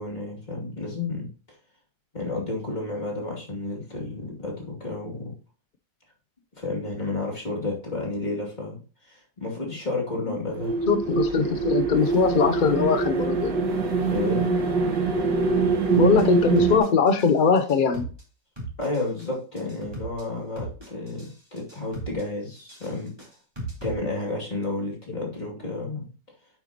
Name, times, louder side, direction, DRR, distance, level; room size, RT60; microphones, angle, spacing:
voice 1, 0.0-1.3 2.1-5.3 6.6-10.7 14.1-14.5 18.8-23.1 23.8-26.1, left 2 dB, 25° left, -3 dB, 2.7 m, -31 dB
sound 1, 10.6-16.8, right 4 dB, 85° right, 2.3 m, -24 dB
voice 2, 10.9-13.5 16.0-18.1, left 5 dB, 75° left, 8 dB, 0.4 m, -21 dB
sound 2, 15.9-16.2 16.6-17.3 17.6-18.2 18.6-19.2 19.6-20.2 20.6-21.3 21.6-22.2 22.6-23.9, right 2 dB, 15° right, 3.8 m, -37 dB
9.1 x 8.1 x 2.9 m, 0.37 s
omnidirectional pair, 1.9 m